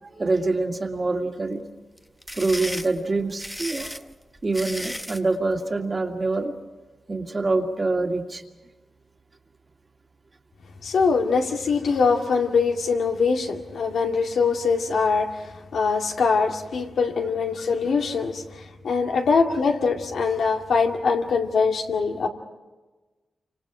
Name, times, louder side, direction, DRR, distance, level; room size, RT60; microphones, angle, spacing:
voice 1, 0.0-1.6 2.3-4.0 4.4-6.5 7.1-8.4, right 3 dB, 35° right, 2.2 m, -25 dB
sound 1, 2.0-5.3, equal, 5° left, 1.0 m, -34 dB
voice 2, 10.8-22.3, left 5 dB, 85° left, 2.2 m, -23 dB
29.0 x 26.0 x 5.0 m
cardioid pair, 85°, 0 cm